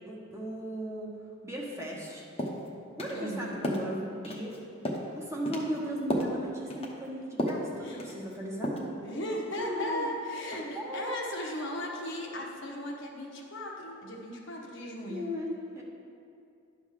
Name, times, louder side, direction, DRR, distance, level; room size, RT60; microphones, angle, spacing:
voice 1, 0.1-1.1 1.4-2.2 3.0-4.5 5.1-8.9 9.6-10.1 10.5-11.5 15.1-15.8, equal, 15° right, -3 dB, 1.2 m, -37 dB
sound 1, 1.9-2.1 2.4-2.6 3.0-3.2 3.6-3.9 4.2-4.6 4.8-5.1 5.5-5.7 6.1-6.4 6.7-6.9 7.4-7.7 8.0-8.3 8.6-8.9, equal, 30° left, 0.9 m, -32 dB
voice 2, 3.1-3.6 7.8-8.0 9.0-15.3, left 1 dB, 65° left, -1 dB, 1.2 m, -36 dB
10.5 x 3.6 x 6.5 m, 2.5 s
head